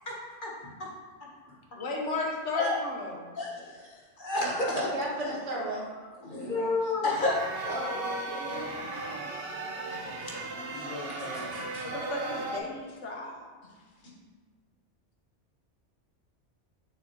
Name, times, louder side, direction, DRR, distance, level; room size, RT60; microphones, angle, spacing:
voice 1, 1.8-3.2 6.4-6.7 11.8-13.4, left 3 dB, 80° left, 0 dB, 1.3 m, -34 dB
voice 2, 3.8-4.9 5.3-5.4 6.2-7.4 7.6-7.7 9.7-11.9, left 2 dB, 45° left, -3 dB, 1.3 m, -32 dB
voice 3, 4.7-5.9 7.7-9.4, right 1 dB, 75° right, -4 dB, 1.7 m, -36 dB
sound 1, 7.0-12.6, right 2 dB, 60° right, 0.9 m, -36 dB
6.6 x 6.1 x 2.9 m, 1.4 s
omnidirectional pair, 1.2 m